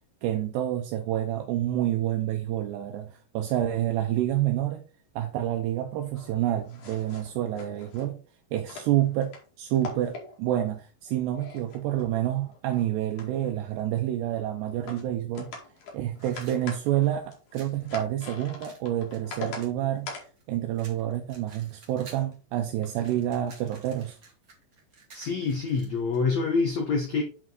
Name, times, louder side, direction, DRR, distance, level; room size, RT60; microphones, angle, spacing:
voice 1, 0.2-4.8 5.2-8.2 8.5-15.5 15.9-20.1 20.5-24.2, right 12 dB, 80° right, 2.7 m, -28 dB
sound 1, 6.1-8.1 8.6-9.4 9.7-10.6 11.1-12.8 13.1-13.8 14.7-15.0 15.3-19.6 20.1-20.3 22.0-22.2 22.8-23.1, left 3 dB, 50° left, 3.1 m, -42 dB
sound 2, 16.1-17.8 18.6-20.4 20.7-22.3 22.7-26.2, right 4 dB, 50° right, 1.0 m, -52 dB
voice 2, 25.1-27.2, left 4 dB, 85° left, 1.5 m, -26 dB
8.6 x 5.1 x 3.9 m
omnidirectional pair, 5.2 m